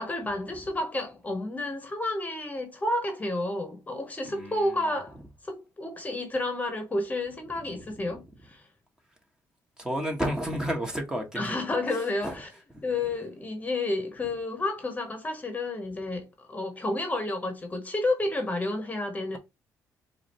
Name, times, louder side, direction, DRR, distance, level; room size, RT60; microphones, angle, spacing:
voice 1, 0.0-5.2 5.4-8.6 11.3-12.5 12.8-19.4, left 2 dB, 20° left, 1.1 m, -31 dB
voice 2, 9.8-11.7 12.2-12.3 12.7-12.8, equal, 10° right, 1.2 m, -31 dB
4.8 x 2.6 x 3.1 m
cardioid pair, 115°, 7 cm